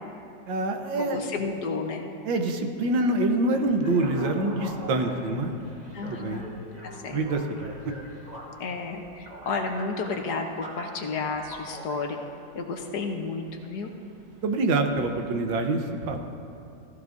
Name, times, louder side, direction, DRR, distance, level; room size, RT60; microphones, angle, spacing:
voice 1, 0.5-1.3 2.3-5.6 6.0-6.4 7.1-7.9 14.4-16.2, right 2 dB, 85° right, 5 dB, 1.6 m, -26 dB
voice 2, 1.0-2.0 5.9-6.5 6.8-7.2 8.6-12.2 12.5-13.9, left 4 dB, 65° left, 3 dB, 1.4 m, -32 dB
sound 1, 3.6-15.4, right 1 dB, 25° right, 1.3 m, -45 dB
16.5 x 14.0 x 2.6 m, 2.5 s
omnidirectional pair, 2.0 m